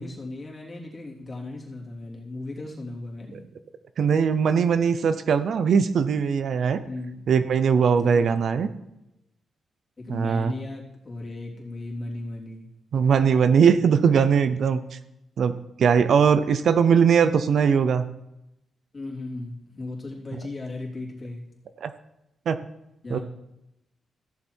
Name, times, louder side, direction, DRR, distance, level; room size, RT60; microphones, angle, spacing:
voice 1, 0.0-3.4 6.8-7.2 8.0-8.3 10.0-12.7 18.9-21.4 23.0-23.2, left 2 dB, 35° left, -3 dB, 3.3 m, -36 dB
voice 2, 4.0-6.8 7.3-8.7 10.1-10.5 12.9-14.8 15.4-18.0 21.8-21.9 22.5-22.6 23.1-23.2, right 6 dB, 65° right, 11 dB, 0.7 m, -20 dB
15.0 x 7.2 x 4.5 m, 0.87 s
cardioid pair, 95°, 0 cm